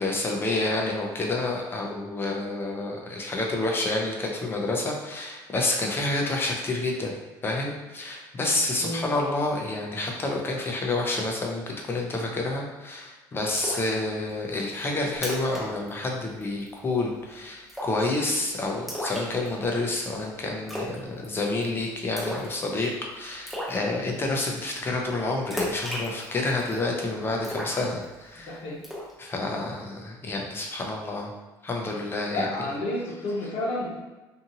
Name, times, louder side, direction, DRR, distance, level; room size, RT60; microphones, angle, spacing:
voice 1, 0.0-28.6 29.2-31.3 31.6-32.5, left 2 dB, 25° left, 0 dB, 0.6 m, -29 dB
Splash splatter, 13.6-13.9 14.3-14.4 14.8-14.9 15.1-15.6 15.9-16.1 16.4-16.8 17.7-18.1 18.9-19.8 20.7-21.0 21.2-21.6 22.2-22.5 22.9-23.0 23.5-23.8 25.5-26.8 27.4-28.4 28.8-29.1, equal, ahead, 1.0 m, -33 dB
voice 2, 28.3-28.8 32.3-34.0, left 1 dB, 55° left, -5 dB, 1.1 m, -30 dB
2.7 x 2.5 x 2.7 m, 1.2 s
supercardioid pair, 95°, 9 cm